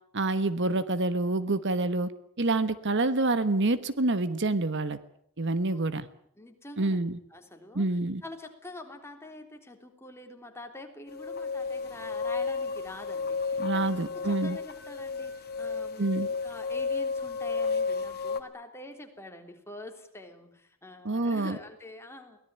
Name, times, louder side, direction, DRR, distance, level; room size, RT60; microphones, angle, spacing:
voice 1, 0.1-2.1 2.4-5.0 5.4-6.1 6.8-7.2 7.7-8.2 13.6-14.6 16.0-16.3 21.0-21.6, right 2 dB, 55° right, 13 dB, 1.3 m, -27 dB
voice 2, 6.4-7.9 8.2-22.4, left 1 dB, 10° left, 4 dB, 3.4 m, -46 dB
sound 1, 11.1-18.4, left 4 dB, 45° left, 2.3 m, -32 dB
23.5 x 18.5 x 9.2 m, 0.68 s
head